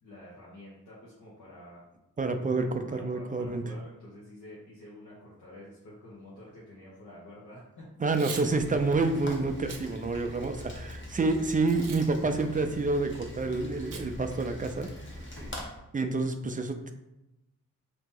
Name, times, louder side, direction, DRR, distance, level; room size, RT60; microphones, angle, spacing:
voice 1, 0.0-1.8 2.5-8.4 10.3-10.7 15.3-15.5, left 1 dB, 70° left, -8 dB, 1.1 m, -49 dB
voice 2, 2.2-3.6 8.0-14.9 15.9-16.9, right 3 dB, 25° right, 6 dB, 0.4 m, -28 dB
Packing tape duct tape / Tearing, 8.0-8.5 8.9-9.1 9.6-9.8 10.3-10.9 11.7-12.1 12.3-12.4 13.9-14.1 14.4-14.5 14.8-15.1, right 6 dB, 80° right, 0.5 m, -42 dB
Rain, 8.5-15.6, left 1 dB, 35° left, 1.0 m, -43 dB
2.9 x 2.8 x 3.7 m, 0.93 s
wide cardioid pair, 75°, 33 cm